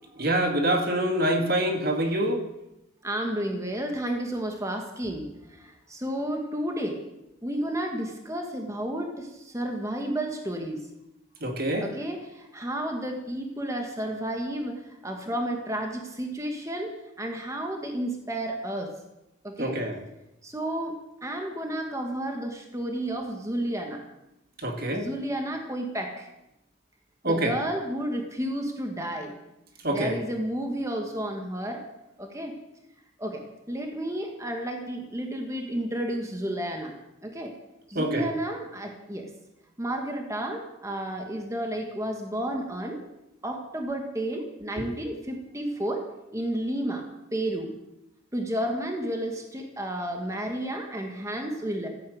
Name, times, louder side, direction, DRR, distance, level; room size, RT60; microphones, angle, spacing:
voice 1, 0.2-2.5 11.4-11.9 19.6-20.0 24.6-25.1 27.2-27.6 29.8-30.2 38.0-38.3 44.8-44.9, right 1 dB, 45° right, 4 dB, 2.0 m, -25 dB
voice 2, 3.0-7.0 7.4-10.9 11.8-18.9 19.4-19.8 20.4-21.0 21.2-24.0 24.9-26.3 27.2-29.3 29.9-31.8 32.2-32.5 33.2-36.9 37.2-37.5 37.9-39.3 39.8-43.0 43.4-46.1 46.3-47.0 47.3-47.7 48.3-51.9, right 1 dB, 15° right, 3 dB, 1.7 m, -31 dB
14.5 x 10.5 x 7.9 m, 0.89 s
head